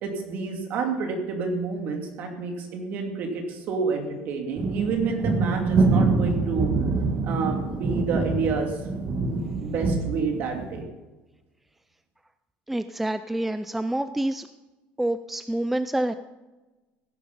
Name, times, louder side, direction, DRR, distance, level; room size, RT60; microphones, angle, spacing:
voice 1, 0.0-6.7 7.2-8.7 9.6-10.9, right 4 dB, 50° right, 2 dB, 2.9 m, -29 dB
sound 1, 4.6-10.8, right 3 dB, 30° right, 1.8 m, -25 dB
voice 2, 12.7-14.5 15.0-16.1, right 1 dB, 5° right, 11 dB, 0.3 m, -27 dB
17.0 x 10.5 x 5.6 m, 1.1 s
cardioid pair, 165°, 4 cm